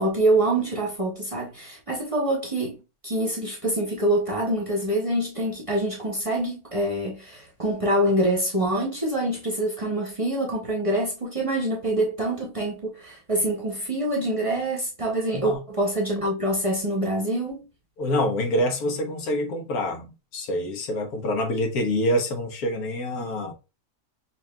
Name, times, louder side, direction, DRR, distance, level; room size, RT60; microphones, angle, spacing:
voice 1, 0.0-17.6, right 1 dB, 30° right, 0.7 m, -25 dB
voice 2, 18.0-23.5, left 1 dB, 85° left, 1.4 m, -26 dB
5.5 x 2.5 x 2.2 m
omnidirectional pair, 1.5 m